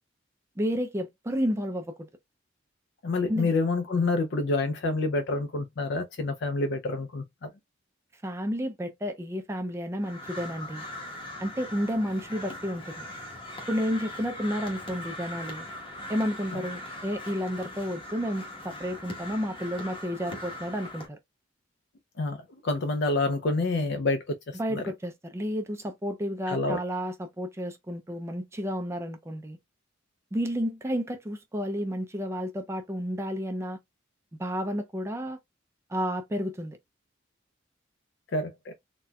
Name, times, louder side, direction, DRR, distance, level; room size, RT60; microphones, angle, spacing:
voice 1, 0.6-2.1 3.3-3.5 8.1-10.8 11.4-13.1 13.7-15.7 16.1-21.2 24.5-29.6 30.3-33.8 34.4-35.4 35.9-36.8, equal, 15° right, 0.4 m, -31 dB
voice 2, 3.0-7.5 16.5-16.6 22.2-24.8 26.5-26.8 38.3-38.7, left 3 dB, 60° left, 0.5 m, -28 dB
Crow, 10.0-21.1, left 1 dB, 25° left, 1.1 m, -40 dB
4.1 x 2.2 x 2.2 m
head